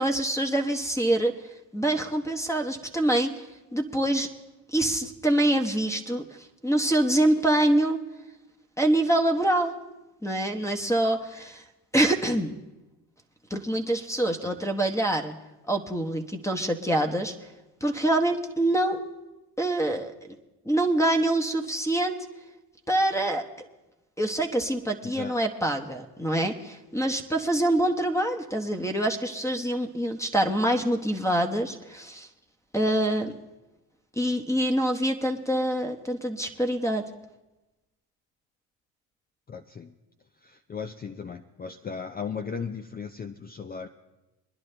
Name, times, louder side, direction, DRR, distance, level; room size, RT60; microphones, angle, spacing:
voice 1, 0.0-1.3 1.7-3.5 3.7-4.3 4.7-6.2 6.6-8.0 8.8-9.8 10.2-11.6 11.9-12.5 13.5-15.3 15.7-17.3 17.8-19.0 19.6-20.1 20.6-22.2 22.9-23.4 24.2-32.3 32.7-33.4 34.2-37.1, right 1 dB, 5° left, 5 dB, 1.1 m, -25 dB
voice 2, 25.0-25.4 39.5-39.9 40.4-43.9, left 6 dB, 20° left, 7 dB, 0.5 m, -37 dB
23.0 x 10.5 x 3.3 m, 1.1 s
supercardioid pair, 75°, 44 cm